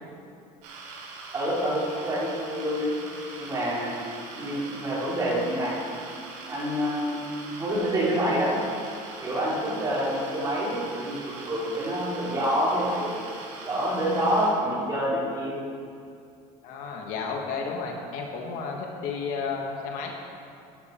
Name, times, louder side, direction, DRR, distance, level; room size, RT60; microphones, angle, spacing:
sound 1, 0.6-14.5, right 3 dB, 85° right, 2.9 m, -42 dB
voice 1, 1.3-2.9 3.4-4.0 4.3-5.8 6.5-7.2 7.5-8.6 9.2-13.1 13.6-15.6, equal, 25° right, -7 dB, 3.2 m, -27 dB
voice 2, 16.6-20.1, left 5 dB, 65° left, 1 dB, 1.5 m, -32 dB
12.0 x 9.3 x 4.4 m, 2.4 s
cardioid pair, 160°, 14 cm